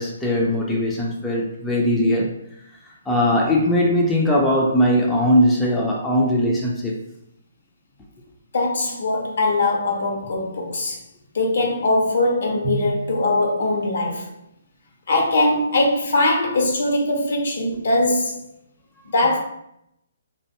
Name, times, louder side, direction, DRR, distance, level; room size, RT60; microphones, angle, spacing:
voice 1, 0.0-2.3 3.1-7.0, left 1 dB, 10° left, 0.4 m, -20 dB
voice 2, 8.5-11.0 11.3-14.3 15.1-18.4 19.1-19.4, left 2 dB, 60° left, 0.7 m, -21 dB
Drum, 12.6-14.4, right 3 dB, 50° right, 0.7 m, -32 dB
2.4 x 2.2 x 2.8 m
figure-of-eight pair, 140°, 0 cm